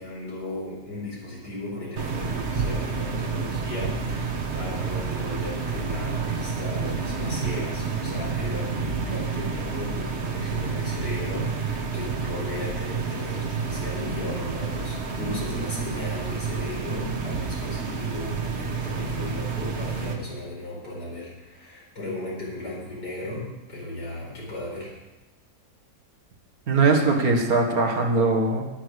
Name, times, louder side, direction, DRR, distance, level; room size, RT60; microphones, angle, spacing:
voice 1, 0.0-24.9, left 2 dB, 80° left, -6 dB, 5.3 m, -36 dB
sound 1, 2.0-20.1, right 5 dB, 45° right, 1.5 m, -29 dB
voice 2, 26.7-28.6, right 3 dB, 60° right, 2 dB, 2.2 m, -21 dB
12.5 x 10.0 x 6.4 m, 1.0 s
omnidirectional pair, 1.8 m